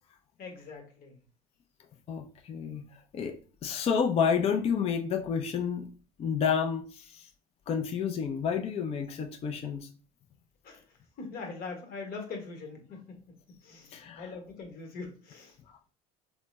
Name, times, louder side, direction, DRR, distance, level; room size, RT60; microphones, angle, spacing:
voice 1, 0.4-1.2 10.6-10.8 11.2-13.2 13.6-15.6, left 4 dB, 55° left, 3 dB, 1.1 m, -42 dB
voice 2, 2.1-2.9 3.1-3.4 3.6-5.8 6.2-7.3 7.7-9.9 13.9-14.2, left 6 dB, 35° left, 5 dB, 0.4 m, -30 dB
3.2 x 2.0 x 3.1 m, 0.38 s
supercardioid pair, 85°, 18 cm